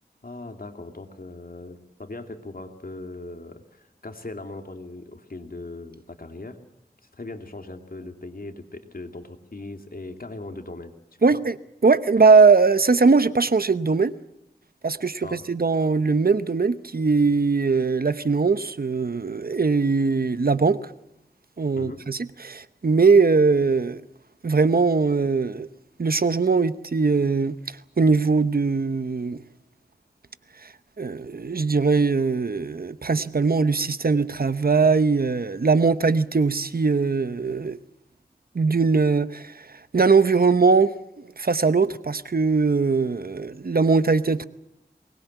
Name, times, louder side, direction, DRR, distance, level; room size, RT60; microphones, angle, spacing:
voice 1, 0.2-6.6 7.2-10.9 11.3-11.4 15.2-15.4 21.7-22.0, left 2 dB, 60° left, 2.6 m, -39 dB
voice 2, 11.2-11.6 11.8-14.2 14.8-20.8 21.6-24.0 24.4-25.7 26.0-29.4 31.0-37.8 38.5-39.7 39.9-40.9 41.4-44.4, right 4 dB, 60° right, 0.9 m, -20 dB
23.0 x 20.5 x 8.1 m
wide cardioid pair, 55°, 17 cm